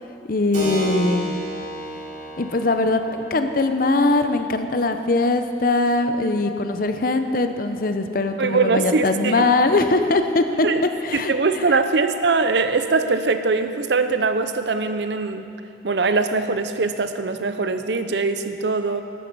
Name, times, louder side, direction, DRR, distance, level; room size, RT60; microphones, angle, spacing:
voice 1, 0.3-1.3 2.4-10.7 11.0-11.3, left 2 dB, 50° left, 8 dB, 0.7 m, -21 dB
Keyboard (musical), 0.5-8.7, right 1 dB, 45° right, 3.3 m, -36 dB
voice 2, 8.4-9.5 10.6-10.8 11.1-15.5 15.8-19.0, right 4 dB, 75° right, 9 dB, 0.7 m, -22 dB
13.0 x 9.2 x 6.2 m, 2.5 s
head